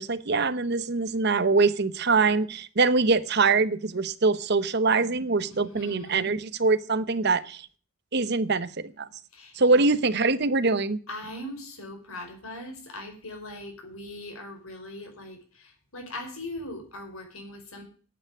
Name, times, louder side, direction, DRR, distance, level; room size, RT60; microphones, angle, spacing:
voice 1, 0.0-7.7 8.1-9.1 9.5-11.0, right 3 dB, 50° right, 0.9 m, -23 dB
voice 2, 5.5-6.3 9.3-9.8 11.1-17.8, left 1 dB, 80° left, 4.9 m, -40 dB
11.0 x 8.8 x 7.7 m
head